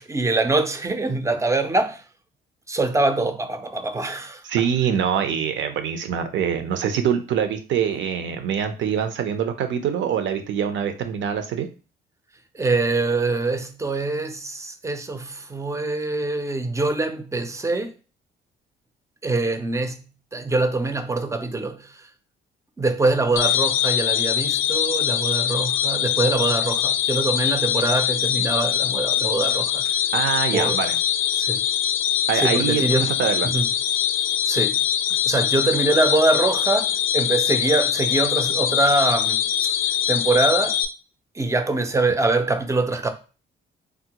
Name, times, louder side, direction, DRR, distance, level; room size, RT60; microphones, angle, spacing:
voice 1, 0.0-2.0 2.7-4.4 12.5-17.9 19.2-20.0 20.3-21.9 22.8-29.9 30.5-30.8 31.3-31.6 32.3-33.1 33.4-33.7 34.4-34.8 35.3-39.4 40.1-40.8 41.4-43.1, right 2 dB, 15° right, 0.4 m, -23 dB
voice 2, 4.4-11.7 30.1-31.0 32.3-33.5, right 8 dB, 70° right, 0.6 m, -24 dB
sound 1, 23.4-40.9, left 10 dB, 90° left, 0.4 m, -23 dB
3.5 x 2.1 x 2.9 m
cardioid pair, 90°, 20 cm